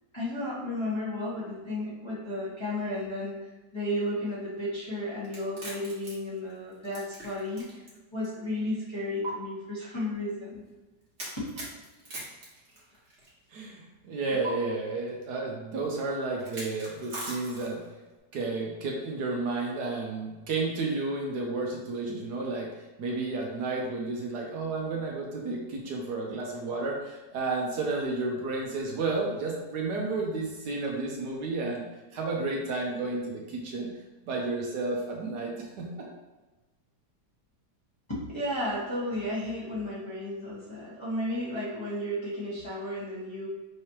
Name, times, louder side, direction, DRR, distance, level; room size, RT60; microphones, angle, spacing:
voice 1, 0.1-7.8 8.1-10.6 11.4-11.5 14.9-15.0 38.1-43.5, left 1 dB, 15° left, -11 dB, 1.4 m, -33 dB
sound 1, 5.2-7.9 8.2-8.3 9.2-9.3 11.2-13.3 14.4-14.5 16.4-17.9, right 2 dB, 40° right, 1.5 m, -40 dB
voice 2, 13.5-17.8 18.3-22.7 23.0-31.8 32.1-33.9 34.2-36.1, right 3 dB, 70° right, -1 dB, 1.2 m, -32 dB
5.4 x 3.3 x 2.9 m, 1.1 s
omnidirectional pair, 1.9 m